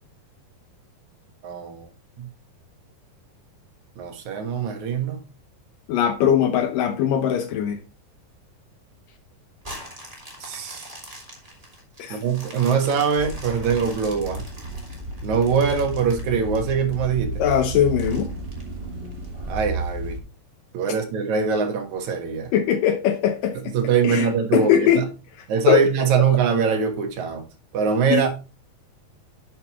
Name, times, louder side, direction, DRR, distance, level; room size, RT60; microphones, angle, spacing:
voice 1, 1.4-1.9 2.2-2.3 4.0-5.2 10.4-10.9 12.1-14.5 15.2-17.4 19.5-20.2 20.7-22.5 23.7-24.7 25.0-25.1 25.5-27.4 27.7-28.3, right 6 dB, 60° right, 2.7 m, -23 dB
voice 2, 5.9-7.8 12.0-12.2 17.4-18.3 22.5-23.7 24.0-25.1 25.7-25.8 28.1-28.2, left 9 dB, 75° left, 2.4 m, -20 dB
sound 1, 9.6-16.9 17.4-17.5 18.0-19.2 19.8-19.9, equal, 10° right, 2.3 m, -42 dB
sound 2, 13.2-20.2, right 2 dB, 30° right, 1.0 m, -32 dB
11.0 x 7.7 x 3.1 m
omnidirectional pair, 4.0 m